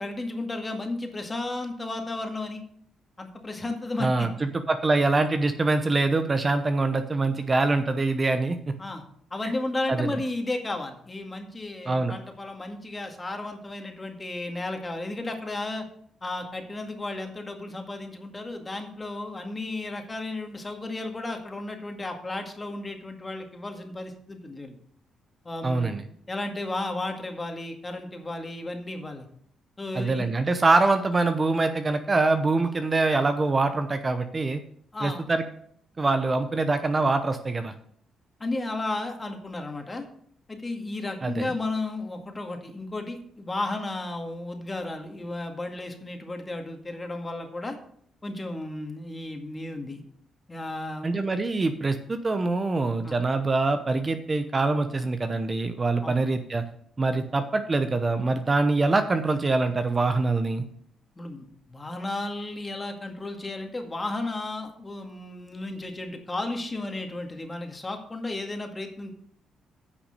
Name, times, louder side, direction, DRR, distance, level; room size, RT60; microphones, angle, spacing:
voice 1, 0.0-2.6 3.2-4.3 8.8-9.0 9.3-15.9 16.2-24.7 25.4-25.9 26.3-29.3 29.8-30.3 32.6-32.7 34.9-35.2 38.4-40.1 40.5-47.8 48.2-50.0 50.5-51.2 53.0-53.1 56.0-56.2 57.1-57.3 61.2-69.1, left 2 dB, 20° left, 4 dB, 1.9 m, -33 dB
voice 2, 4.0-8.7 9.4-9.5 9.9-10.1 11.9-12.1 25.6-26.0 29.9-34.6 35.0-35.4 36.0-37.7 41.2-41.5 51.0-56.6 57.0-60.6, right 3 dB, 30° right, 9 dB, 0.8 m, -24 dB
9.6 x 5.9 x 6.6 m, 0.64 s
cardioid pair, 90°, 0 cm